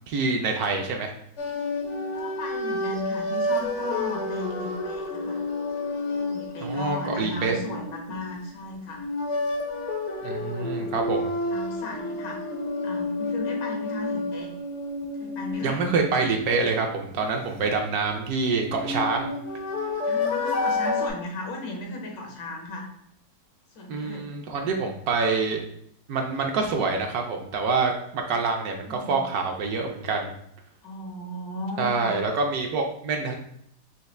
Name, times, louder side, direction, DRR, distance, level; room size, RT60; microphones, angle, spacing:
voice 1, 0.1-1.1 6.6-7.6 10.2-11.3 15.6-19.3 23.9-25.6 26.1-30.3 31.8-33.3, right 4 dB, 70° right, 2 dB, 0.9 m, -26 dB
sound 1, 1.4-8.4 8.9-16.8 18.5-21.1, left 2 dB, 65° left, 0.7 m, -30 dB
voice 2, 2.1-5.4 6.1-9.0 10.3-10.9 11.5-12.4 12.8-14.5 15.2-15.8 20.1-22.9 23.7-24.3 28.9-29.2 30.8-32.2, left 2 dB, 85° left, 1 dB, 1.6 m, -36 dB
5.5 x 2.4 x 3.2 m, 0.71 s
omnidirectional pair, 1.9 m